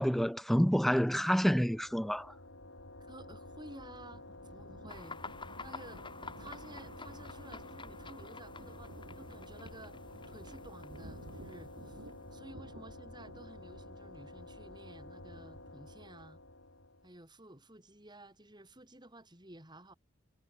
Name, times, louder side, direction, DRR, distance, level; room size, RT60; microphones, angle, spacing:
voice 1, 0.0-2.3, equal, ahead, 0.5 m, -28 dB
sound 1, 1.4-17.2, left 2 dB, 70° left, 8.0 m, -51 dB
voice 2, 3.0-5.2 5.6-6.0 6.4-10.0 10.3-12.0 12.3-16.4 17.0-19.9, right 1 dB, 20° right, 7.1 m, -53 dB
Thunder, 3.4-15.7, right 1 dB, 60° right, 1.7 m, -55 dB
sound 2, 4.9-12.4, left 4 dB, 25° left, 3.3 m, -50 dB
head